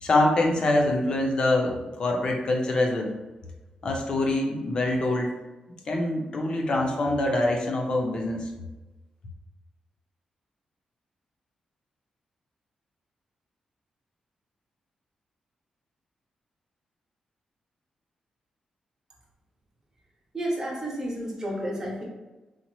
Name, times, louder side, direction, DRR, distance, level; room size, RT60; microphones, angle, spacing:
voice 1, 0.0-3.1 3.8-5.3 5.9-8.5, left 2 dB, 40° left, 1 dB, 0.5 m, -24 dB
voice 2, 20.3-22.0, right 1 dB, 25° right, -3 dB, 0.8 m, -31 dB
4.0 x 2.1 x 3.0 m, 1.1 s
wide cardioid pair, 170°, 2 cm